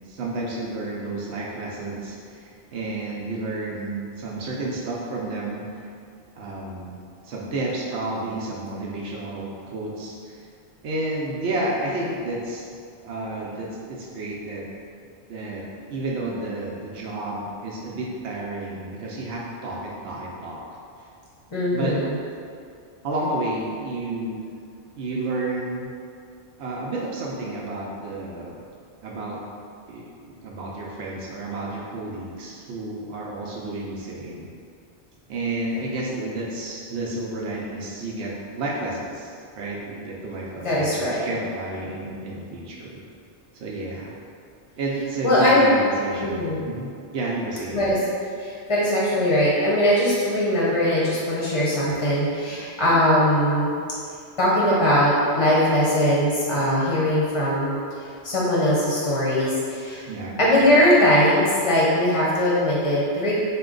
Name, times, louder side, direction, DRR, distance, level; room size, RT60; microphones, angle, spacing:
voice 1, 0.1-2.4 2.7-5.7 6.4-7.0 7.2-10.4 10.8-12.6 13.0-14.6 15.3-15.6 15.9-20.6 21.7-22.0 23.0-24.4 24.9-25.9 26.6-28.5 29.0-29.4 29.9-34.5 35.3-43.0 43.5-44.1 44.8-47.9 60.1-60.4, right 2 dB, 80° right, -4 dB, 0.9 m, -31 dB
voice 2, 21.5-22.2 40.6-41.3 45.2-45.7 46.2-46.6 47.7-48.0 48.4-53.7 54.4-57.8 58.2-60.1 60.4-63.3, left 1 dB, 35° left, -7 dB, 0.6 m, -20 dB
4.2 x 2.2 x 3.7 m, 2.4 s
omnidirectional pair, 1.1 m